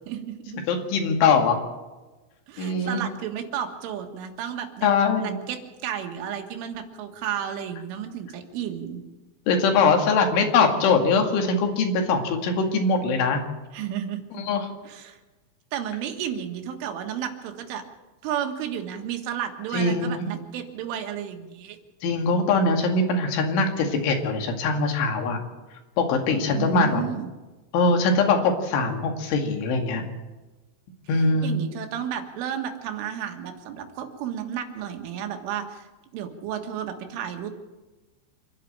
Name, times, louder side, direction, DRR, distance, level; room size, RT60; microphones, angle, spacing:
voice 1, 0.1-0.6 2.5-4.9 5.2-9.0 13.7-14.4 14.8-15.2 15.7-17.8 18.2-21.8 26.6-27.3 31.4-37.5, right 9 dB, 90° right, 5 dB, 4.2 m, -32 dB
voice 2, 0.7-1.6 2.6-3.0 4.8-5.4 9.5-13.4 14.5-14.7 19.7-20.3 22.0-25.4 26.0-27.1 27.7-30.0 31.1-31.6, left 4 dB, 80° left, 3 dB, 4.6 m, -22 dB
26.0 x 11.5 x 8.7 m, 1.2 s
omnidirectional pair, 5.5 m